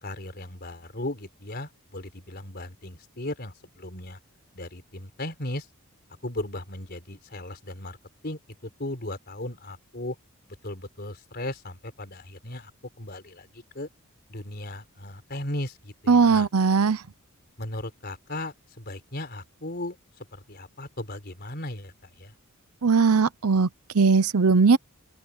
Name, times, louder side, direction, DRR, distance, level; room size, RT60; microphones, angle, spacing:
voice 1, 0.0-4.2 4.5-5.7 6.2-8.0 8.2-10.2 10.6-12.7 13.0-13.9 14.3-16.5 17.6-20.0 20.3-22.3, left 1 dB, 45° left, 4.2 m, -36 dB
voice 2, 16.1-17.0 22.8-23.7 23.9-24.8, right 4 dB, 85° right, 0.7 m, -19 dB
open air
head